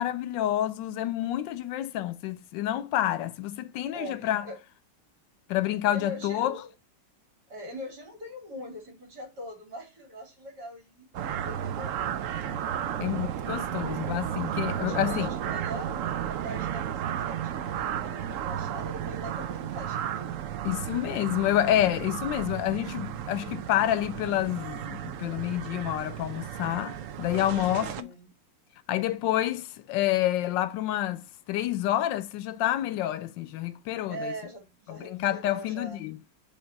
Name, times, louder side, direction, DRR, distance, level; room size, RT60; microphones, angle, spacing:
voice 1, 0.0-4.4 5.5-6.5 13.0-15.3 20.6-28.1 28.9-31.2 31.5-34.3 35.0-36.2, left 13 dB, 80° left, 1.3 m, -28 dB
voice 2, 3.9-4.6 5.9-6.7 7.5-12.2 14.7-20.3 27.4-28.3 34.1-36.0, equal, 60° right, 3.4 m, -42 dB
sound 1, 11.1-28.0, right 10 dB, 80° right, 0.7 m, -33 dB
7.2 x 3.3 x 4.0 m
omnidirectional pair, 2.0 m